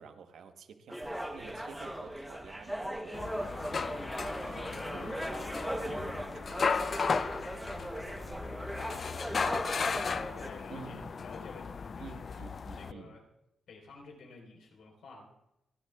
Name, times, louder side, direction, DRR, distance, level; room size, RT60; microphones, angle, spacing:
voice 1, 0.0-3.5 3.8-4.2 4.4-7.5 10.7-11.2 12.0-13.2, right 6 dB, 65° right, 7 dB, 1.1 m, -50 dB
sound 1, 0.9-10.5, right 1 dB, 5° right, 0.9 m, -39 dB
sound 2, 1.0-8.5, right 5 dB, 40° right, 0.7 m, -54 dB
sound 3, 3.1-12.9, left 5 dB, 35° left, 0.3 m, -35 dB
voice 2, 8.3-8.7 9.2-12.4 12.7-13.2 13.7-15.3, left 4 dB, 85° left, 0 dB, 4.1 m, -51 dB
30.0 x 11.5 x 2.3 m, 0.90 s
wide cardioid pair, 180°, 0 cm